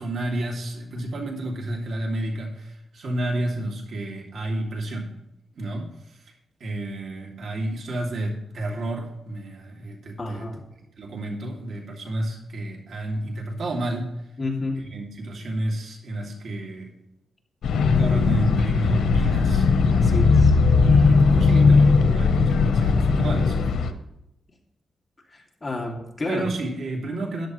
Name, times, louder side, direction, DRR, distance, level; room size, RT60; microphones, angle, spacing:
voice 1, 0.0-5.1 5.5-6.3 6.6-10.5 11.0-14.3 14.9-16.9 18.0-19.7 20.8-23.6 26.3-27.5, right 1 dB, 65° right, 0 dB, 2.5 m, -30 dB
voice 2, 10.2-10.6 14.4-14.8 19.9-20.5 25.3-26.5, left 2 dB, 25° left, 0 dB, 2.4 m, -30 dB
sound 1, 17.6-23.9, left 4 dB, 90° left, 0.9 m, -18 dB
13.5 x 10.5 x 3.1 m, 0.89 s
wide cardioid pair, 120°, 0 cm